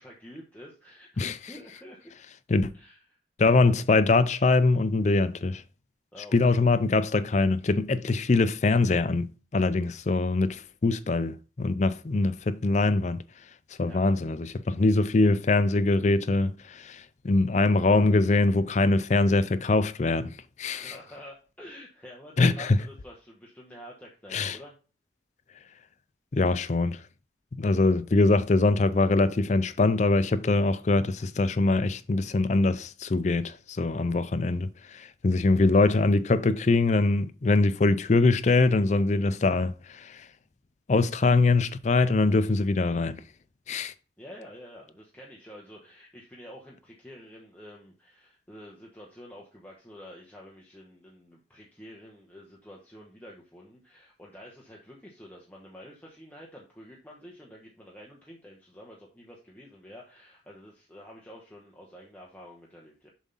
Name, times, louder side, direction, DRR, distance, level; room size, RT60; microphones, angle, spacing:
voice 1, 0.0-2.1 2.7-3.0 6.1-6.4 13.9-14.1 20.6-24.7 44.2-63.1, equal, 10° left, 1.1 m, -48 dB
voice 2, 3.4-5.6 6.3-13.2 13.8-20.9 22.4-22.8 24.3-24.6 26.3-27.0 27.5-40.3 40.9-43.2 43.7-43.9, left 3 dB, 40° left, 0.4 m, -23 dB
7.3 x 3.6 x 5.5 m
head